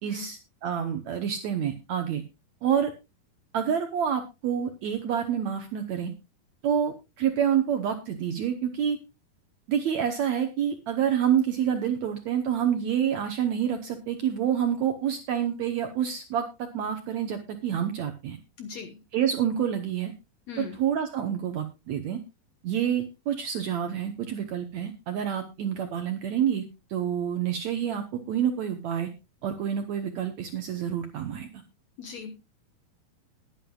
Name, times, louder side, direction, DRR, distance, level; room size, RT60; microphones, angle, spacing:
voice 1, 0.0-2.2 2.6-2.9 3.5-6.1 6.6-9.0 9.7-18.4 19.1-20.1 20.6-22.2 22.6-26.6 26.9-29.1 29.4-31.6, right 9 dB, 70° right, 6 dB, 1.8 m, -28 dB
voice 2, 18.6-19.0 20.5-20.8 32.0-32.3, left 5 dB, 60° left, 6 dB, 2.0 m, -38 dB
21.0 x 8.9 x 2.3 m, 0.27 s
omnidirectional pair, 4.3 m